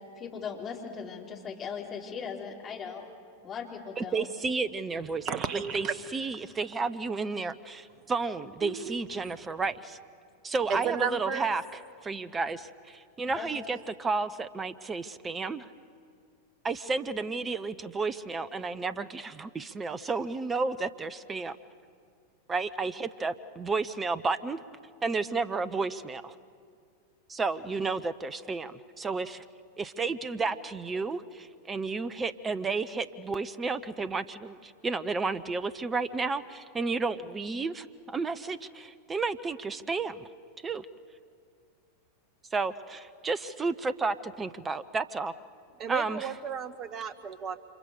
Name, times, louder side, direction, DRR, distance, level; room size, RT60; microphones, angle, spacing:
voice 1, 0.2-3.1 3.4-4.3 10.6-10.8 13.3-13.5, left 6 dB, 25° left, -1 dB, 4.3 m, -39 dB
voice 2, 4.0-5.3 5.7-5.9 6.1-10.0 10.4-11.6 12.0-15.7 16.6-21.6 22.5-24.6 25.0-26.3 27.3-29.4 29.8-40.3 40.6-40.9 42.5-45.3 45.9-46.3, right 4 dB, 15° right, 15 dB, 0.8 m, -32 dB
voice 3, 5.2-6.0 8.6-9.0 10.7-11.5 45.8-47.6, right 7 dB, 35° right, 13 dB, 1.4 m, -33 dB
29.5 x 27.0 x 6.8 m, 2.2 s
figure-of-eight pair, 90°, 0 cm